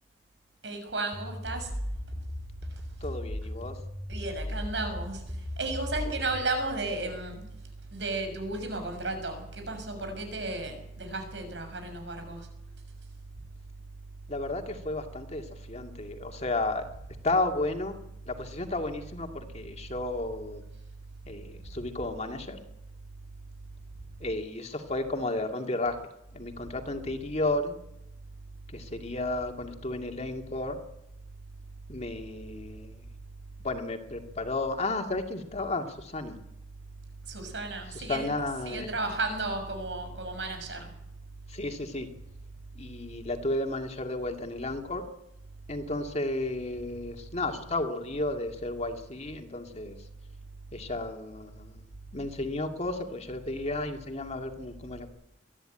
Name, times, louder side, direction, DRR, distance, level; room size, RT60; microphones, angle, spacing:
voice 1, 0.6-1.7 4.1-7.5 7.9-12.5 37.3-40.9, right 2 dB, 85° right, 6 dB, 6.5 m, -34 dB
sound 1, 1.1-6.5, left 1 dB, 15° left, 2.5 m, -37 dB
voice 2, 3.0-3.8 14.3-16.8 17.2-18.0 18.3-20.6 21.3-22.6 24.2-26.0 26.3-27.8 28.7-30.8 31.9-33.0 33.6-36.4 37.9-38.9 41.5-42.1 42.8-45.1 45.7-50.0 50.7-51.8 52.1-55.1, left 2 dB, 40° left, 5 dB, 2.2 m, -33 dB
22.0 x 13.5 x 9.0 m, 0.86 s
head